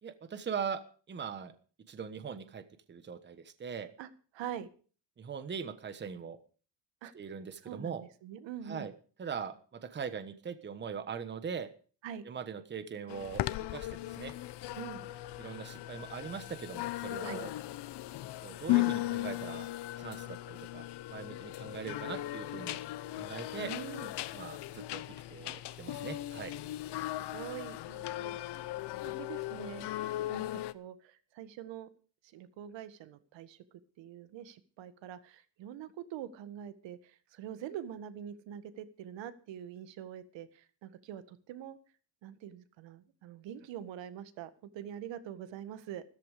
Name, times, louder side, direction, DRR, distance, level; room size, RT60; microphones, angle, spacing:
voice 1, 0.0-0.8 1.1-1.5 1.9-2.6 2.9-3.9 5.2-6.4 7.1-8.0 8.7-8.9 9.2-11.7 12.2-13.4 13.7-14.3 15.4-17.5 18.4-19.7 20.0-22.8 23.1-23.7 24.3-25.0 25.3-26.5, right 6 dB, 25° right, 11 dB, 1.2 m, -41 dB
voice 2, 4.3-4.7 7.0-7.1 7.6-8.9 12.0-12.2 14.8-15.1 17.2-17.4 23.6-24.1 27.3-28.3 29.1-31.9 32.2-33.6 34.0-41.8 42.2-46.0, right 9 dB, 80° right, 12 dB, 1.8 m, -44 dB
sound 1, 13.1-30.7, left 16 dB, 65° left, 1.0 m, -37 dB
14.5 x 14.0 x 5.1 m, 0.40 s
cardioid pair, 160°, 44 cm